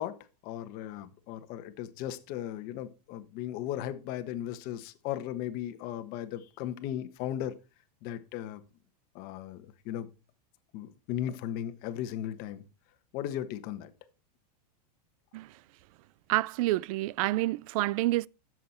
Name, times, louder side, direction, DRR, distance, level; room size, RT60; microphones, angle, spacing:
voice 1, 0.0-7.5 8.0-8.6 9.1-10.1 10.7-12.6 13.1-13.9, left 11 dB, 45° left, 1.3 m, -36 dB
voice 2, 16.3-18.3, right 18 dB, 60° right, 0.4 m, -28 dB
11.0 x 7.5 x 4.3 m
supercardioid pair, 145°, 21 cm